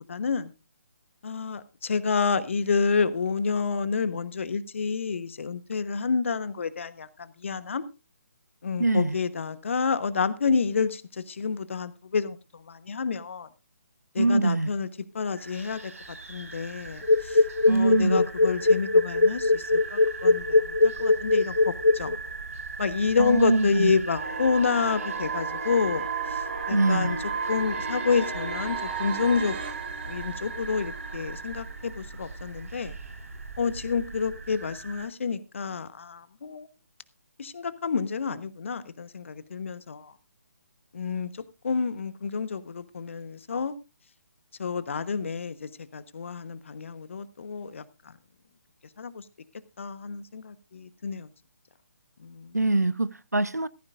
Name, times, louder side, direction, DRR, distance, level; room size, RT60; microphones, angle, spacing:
voice 1, 0.1-0.5 1.2-7.8 8.6-13.5 14.1-14.9 15.1-22.2 22.8-27.2 27.5-29.6 30.1-33.0 33.6-36.7 37.4-40.1 40.9-41.3 41.6-43.7 44.6-47.8 49.0-49.2 49.8-51.3 52.2-52.7, left 5 dB, 50° left, 1.1 m, -29 dB
voice 2, 8.8-9.2 14.2-14.7 17.7-18.3 23.2-24.0 26.7-27.2 52.5-53.7, right 2 dB, 85° right, 0.7 m, -23 dB
sound 1, 15.4-35.1, right 4 dB, 60° right, 2.9 m, -39 dB
sound 2, 17.0-22.2, left 3 dB, 80° left, 0.7 m, -20 dB
sound 3, 24.1-32.1, right 5 dB, 40° right, 3.6 m, -34 dB
16.0 x 14.0 x 2.5 m
figure-of-eight pair, 140°, 9 cm